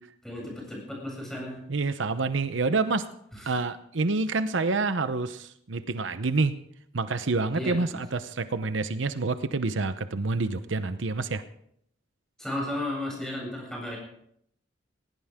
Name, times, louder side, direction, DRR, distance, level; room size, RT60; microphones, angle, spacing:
voice 1, 0.2-1.6 3.3-3.5 7.5-8.0 12.4-14.0, left 1 dB, ahead, -3 dB, 7.9 m, -34 dB
voice 2, 1.7-3.1 3.5-6.5 6.9-11.4, right 3 dB, 85° right, 11 dB, 0.8 m, -27 dB
19.0 x 17.5 x 3.7 m, 0.71 s
head